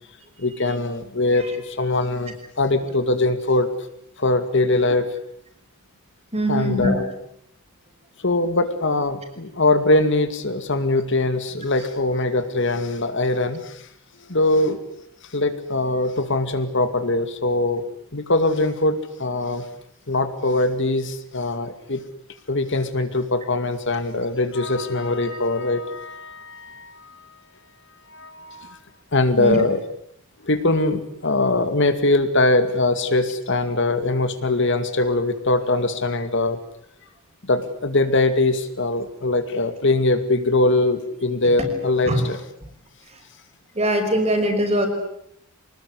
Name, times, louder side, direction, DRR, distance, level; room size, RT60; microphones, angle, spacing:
voice 1, 0.4-3.7 4.2-5.1 6.5-7.1 8.2-13.8 14.3-14.8 15.3-17.9 18.1-19.6 20.1-22.0 22.5-27.2 28.1-28.8 29.1-29.8 30.4-36.6 37.5-42.4, left 2 dB, 60° left, 9 dB, 2.3 m, -22 dB
voice 2, 6.3-7.0 29.4-29.6 42.1-42.2 43.8-44.9, equal, 30° right, 5 dB, 5.6 m, -21 dB
26.0 x 20.0 x 9.8 m, 0.74 s
head